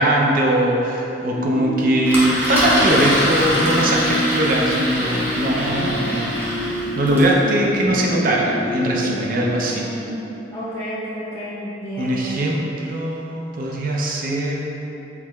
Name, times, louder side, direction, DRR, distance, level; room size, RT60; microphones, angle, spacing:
voice 1, 0.0-6.3 7.0-9.9 12.0-14.6, right 1 dB, 50° right, -2 dB, 0.5 m, -20 dB
sound 1, 1.3-10.0, left 1 dB, 65° left, 0.7 m, -27 dB
Engine, 2.1-7.3, equal, 10° right, 0.8 m, -24 dB
voice 2, 9.3-10.2 10.5-12.4, right 1 dB, 15° left, -9 dB, 0.4 m, -31 dB
4.7 x 4.2 x 2.3 m, 3.0 s
head